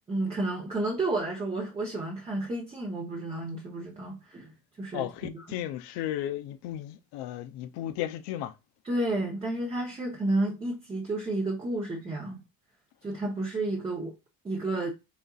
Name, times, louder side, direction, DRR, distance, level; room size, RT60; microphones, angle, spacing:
voice 1, 0.1-4.5 4.8-5.3 8.8-12.4 13.0-14.1 14.4-14.9, right 2 dB, 15° right, 0.6 m, -31 dB
voice 2, 4.9-8.5, left 12 dB, 70° left, 0.6 m, -34 dB
4.1 x 3.7 x 2.3 m
cardioid pair, 165°, 41 cm